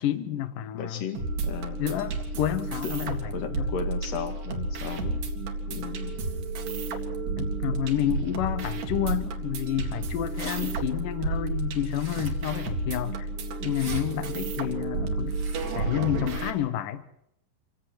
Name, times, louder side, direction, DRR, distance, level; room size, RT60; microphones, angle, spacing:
voice 1, 0.0-1.1 1.8-3.7 7.4-13.3 13.6-15.4 15.8-17.1, left 12 dB, 65° left, 2.4 m, -30 dB
voice 2, 0.7-1.8 3.3-5.3 5.7-6.2, left 7 dB, 45° left, 2.7 m, -35 dB
sound 1, 1.2-16.5, right 3 dB, 55° right, 3.4 m, -31 dB
sound 2, 10.3-10.6 11.9-12.6 13.6-14.0 15.3-15.8, right 3 dB, 30° right, 2.5 m, -42 dB
26.5 x 17.0 x 6.1 m
omnidirectional pair, 4.8 m